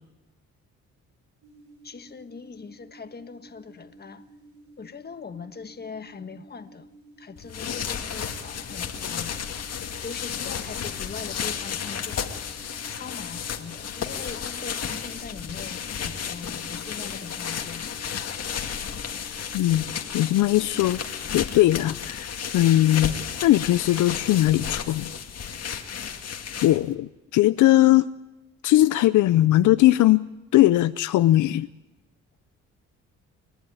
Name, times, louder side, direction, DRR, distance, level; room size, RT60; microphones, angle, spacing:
sound 1, 1.4-21.2, right 1 dB, 85° right, 7.2 m, -52 dB
voice 1, 1.8-4.2 4.8-6.9 7.2-9.4 9.8-12.3 12.9-17.9, left 5 dB, 30° left, 1.5 m, -41 dB
sound 2, 7.4-26.9, left 7 dB, 55° left, 2.1 m, -33 dB
voice 2, 19.5-19.9 20.1-21.0 21.3-23.1 23.4-25.1 26.6-28.1 28.6-30.2 30.5-31.7, left 15 dB, 75° left, 0.6 m, -19 dB
28.5 x 11.0 x 8.9 m
cardioid pair, 90°, 30 cm